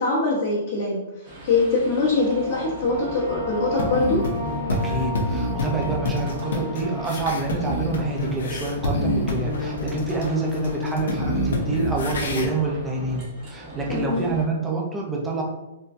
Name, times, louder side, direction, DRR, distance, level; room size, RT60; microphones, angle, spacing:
voice 1, 0.0-4.2 13.9-14.3, left 3 dB, 50° left, -7 dB, 1.0 m, -23 dB
sound 1, 1.2-14.5, right 1 dB, 35° right, 1.4 m, -38 dB
sound 2, 2.0-9.2, left 1 dB, 75° right, 0.7 m, -35 dB
sound 3, 3.8-12.5, left 2 dB, 80° left, 0.7 m, -27 dB
voice 2, 4.7-15.4, right 3 dB, 10° right, -1 dB, 0.5 m, -27 dB
3.7 x 2.2 x 2.6 m, 0.98 s
hypercardioid pair, 155°, 0 cm